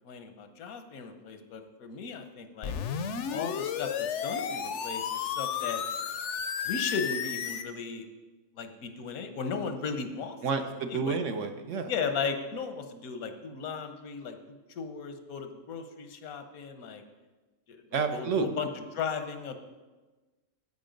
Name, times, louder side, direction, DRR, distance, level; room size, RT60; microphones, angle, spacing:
voice 1, 0.0-2.7 3.3-5.8 6.6-8.1 8.6-10.4 10.9-11.2 11.9-17.0 17.7-19.6, left 5 dB, 85° left, 8 dB, 1.4 m, -36 dB
sound 1, 2.6-7.6, left 8 dB, 65° left, 0.9 m, -33 dB
voice 2, 10.4-11.9 17.9-18.5, right 5 dB, 65° right, 7 dB, 1.1 m, -30 dB
9.6 x 8.4 x 5.2 m, 1.2 s
omnidirectional pair, 1.4 m